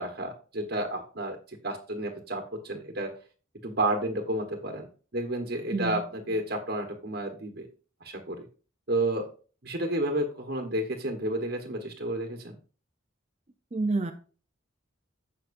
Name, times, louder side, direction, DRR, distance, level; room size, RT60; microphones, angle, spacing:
voice 1, 0.0-3.1 3.6-4.9 5.1-7.7 8.0-8.4 8.9-9.3 9.6-12.5, right 1 dB, 55° right, 3 dB, 1.3 m, -31 dB
voice 2, 5.7-6.0 13.7-14.1, right 3 dB, 30° right, 6 dB, 0.6 m, -28 dB
15.0 x 5.8 x 2.6 m, 0.38 s
head